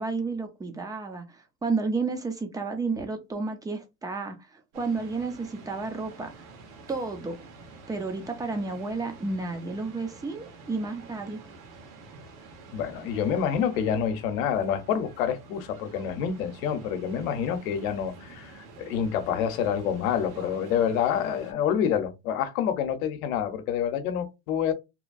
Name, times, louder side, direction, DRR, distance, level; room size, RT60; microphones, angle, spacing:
voice 1, 0.0-6.3 6.9-7.4 7.9-11.4, right 3 dB, 10° right, 0.4 m, -31 dB
sound 1, 4.7-21.5, right 3 dB, 65° right, 1.4 m, -48 dB
voice 2, 12.7-24.7, left 8 dB, 65° left, 0.8 m, -27 dB
3.0 x 2.2 x 2.5 m
hypercardioid pair, 110°, 46 cm